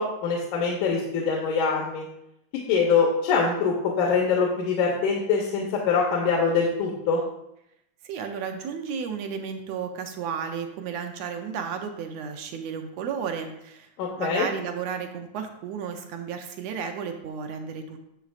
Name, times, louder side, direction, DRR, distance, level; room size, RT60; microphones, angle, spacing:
voice 1, 0.0-2.1 2.7-7.2 14.0-14.5, left 5 dB, 85° left, -1 dB, 2.4 m, -24 dB
voice 2, 8.0-13.9 14.2-18.0, right 6 dB, 75° right, 5 dB, 1.7 m, -33 dB
11.5 x 7.1 x 2.4 m, 0.81 s
omnidirectional pair, 3.5 m